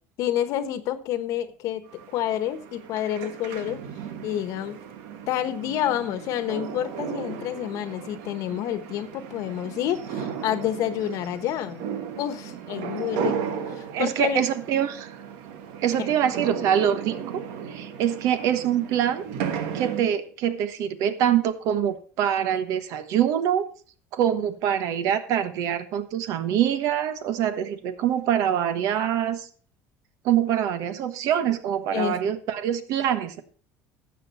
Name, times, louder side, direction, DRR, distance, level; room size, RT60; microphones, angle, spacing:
voice 1, 0.2-1.8 2.1-3.8 4.2-4.8 5.3-11.8 12.2-14.4 16.0-16.2 31.9-32.2, left 11 dB, 65° left, 11 dB, 1.2 m, -28 dB
sound 1, 1.9-20.1, right 7 dB, 85° right, 1.5 m, -35 dB
voice 2, 13.9-15.1 15.8-19.3 19.7-23.7 24.1-29.5 30.2-33.4, right 10 dB, 65° right, 11 dB, 1.2 m, -24 dB
12.5 x 7.7 x 4.2 m, 0.42 s
cardioid pair, 120°, 6 cm